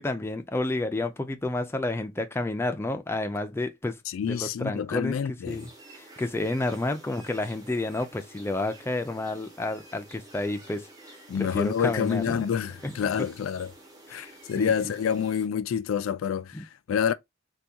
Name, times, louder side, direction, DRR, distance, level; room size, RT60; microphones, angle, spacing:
voice 1, 0.0-4.0 4.3-5.1 5.5-10.9 11.3-12.4 12.8-13.1 14.1-14.3 14.6-14.7 16.5-16.6, left 2 dB, 10° left, 0.3 m, -30 dB
voice 2, 4.1-5.7 11.3-13.7 14.1-17.1, left 7 dB, 85° left, 0.3 m, -28 dB
sound 1, 5.5-15.5, right 2 dB, 20° right, 0.8 m, -50 dB
3.5 x 2.2 x 2.7 m
head